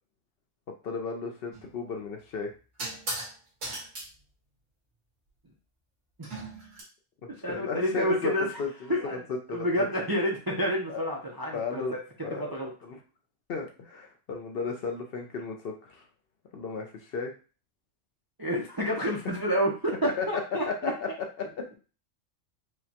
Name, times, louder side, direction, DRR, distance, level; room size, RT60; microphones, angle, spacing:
voice 1, 0.8-2.5 7.5-8.7 9.3-9.7 10.9-11.0 11.5-11.9 12.2-12.5 12.8-13.0 13.5-16.0 16.5-17.3 20.0-20.3 20.7-20.9, left 5 dB, 60° left, 2 dB, 0.7 m, -34 dB
sound 1, 1.5-1.7 2.8-3.3 3.6-4.1 6.2-6.8, right 2 dB, 90° right, 1.7 m, -36 dB
voice 2, 7.4-8.5 8.9-9.2 9.5-12.0 12.4-12.7 18.4-20.9, equal, 30° right, -1 dB, 0.4 m, -29 dB
4.9 x 2.1 x 2.8 m, 0.35 s
omnidirectional pair, 1.3 m